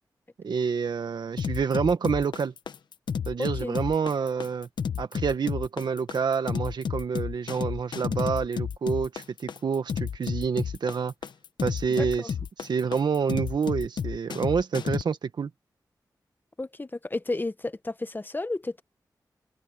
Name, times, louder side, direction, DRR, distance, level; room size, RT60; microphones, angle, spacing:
voice 1, 0.4-2.5 3.3-4.7 5.0-11.1 11.6-12.2 12.6-15.5, right 6 dB, 80° right, 1.6 m, -28 dB
sound 1, 1.4-15.0, left 7 dB, 85° left, 1.0 m, -31 dB
voice 2, 3.4-3.8 12.0-12.3 16.6-18.8, left 2 dB, 25° left, 1.1 m, -32 dB
open air
cardioid pair, 65°, 7 cm